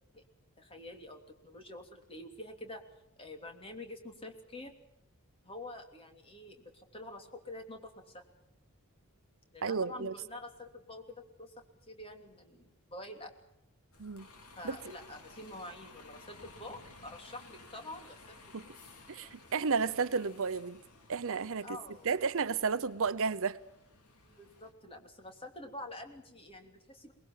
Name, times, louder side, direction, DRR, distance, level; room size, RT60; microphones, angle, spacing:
voice 1, 0.6-2.8 3.2-4.8 5.4-8.2 9.5-11.1 11.4-11.5 11.9-12.6 12.9-13.3 14.6-18.4 21.6-22.1 24.4-27.1, left 1 dB, 25° left, 3.0 m, -47 dB
voice 2, 9.6-10.1 14.0-14.3 14.6-14.8 18.5-18.6 19.1-20.8 21.1-21.8 22.0-23.6, right 5 dB, 65° right, 0.8 m, -32 dB
Bus, 13.9-24.7, left 3 dB, 75° left, 3.6 m, -56 dB
23.5 x 20.5 x 7.5 m
head